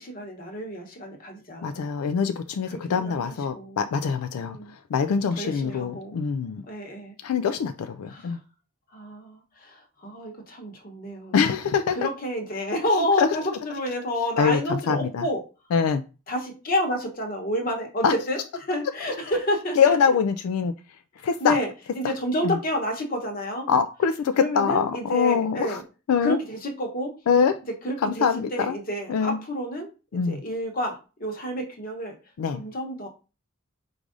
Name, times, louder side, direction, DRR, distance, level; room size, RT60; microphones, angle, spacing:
voice 1, 0.0-1.8 2.7-3.9 4.4-4.7 5.3-6.2 6.6-7.2 8.1-8.4 8.9-11.3 11.9-15.4 16.3-20.2 21.2-23.7 24.3-25.8 26.2-27.1 27.8-33.1, equal, 40° left, 1.1 m, -30 dB
voice 2, 1.6-4.6 4.9-6.6 7.2-8.4 11.3-12.0 13.2-13.3 14.4-14.6 14.9-15.2 15.7-16.0 18.0-18.1 19.8-20.7 21.2-21.5 22.4-22.5 23.7-25.8 26.1-26.4 27.3-27.5 28.0-28.7 29.1-29.4 30.1-30.4 32.4-32.6, left 6 dB, 85° left, 0.3 m, -23 dB
4.7 x 2.5 x 3.7 m
head